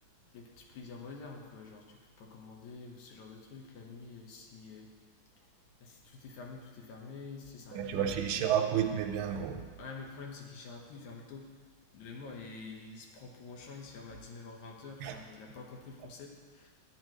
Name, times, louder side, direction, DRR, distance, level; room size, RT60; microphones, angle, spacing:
voice 1, 0.3-4.9 5.8-8.6 9.8-11.5 11.9-16.7, left 4 dB, 70° left, 0 dB, 2.3 m, -47 dB
voice 2, 7.8-9.6 15.0-15.1, right 9 dB, 90° right, 4 dB, 2.4 m, -31 dB
12.5 x 8.8 x 3.1 m, 1.5 s
omnidirectional pair, 3.9 m